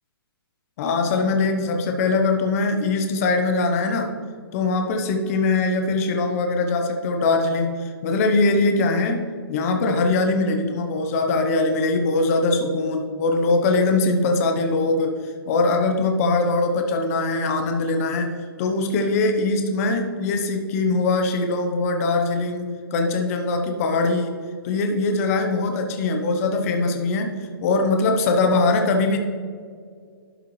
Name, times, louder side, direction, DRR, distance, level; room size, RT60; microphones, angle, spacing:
voice 1, 0.8-4.1 4.5-15.2 15.5-18.3 18.6-24.4 24.6-29.2, left 3 dB, 35° left, 4 dB, 0.9 m, -22 dB
11.5 x 5.5 x 3.2 m, 2.1 s
hypercardioid pair, 145°, 13 cm